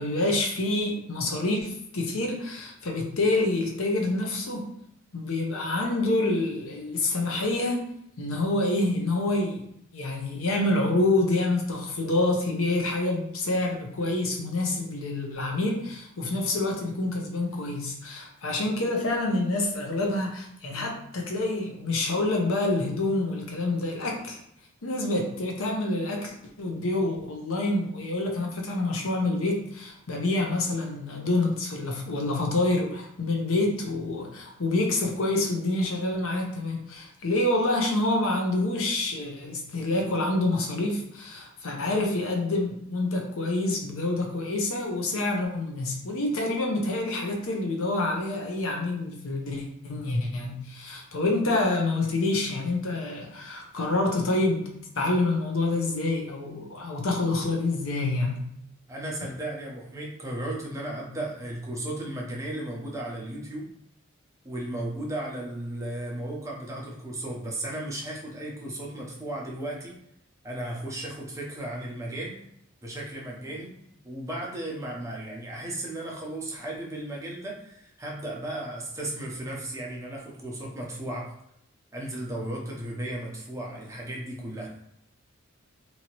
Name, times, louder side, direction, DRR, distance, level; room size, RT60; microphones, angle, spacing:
voice 1, 0.0-4.7 5.1-7.9 8.2-9.7 9.9-24.4 24.8-54.7 55.0-58.4, left 2 dB, 85° left, 1 dB, 0.7 m, -27 dB
voice 2, 58.9-63.7 64.4-70.0 70.4-72.4 72.8-81.3 81.9-84.7, right 1 dB, 15° right, -3 dB, 0.7 m, -35 dB
2.9 x 2.7 x 2.9 m, 0.73 s
head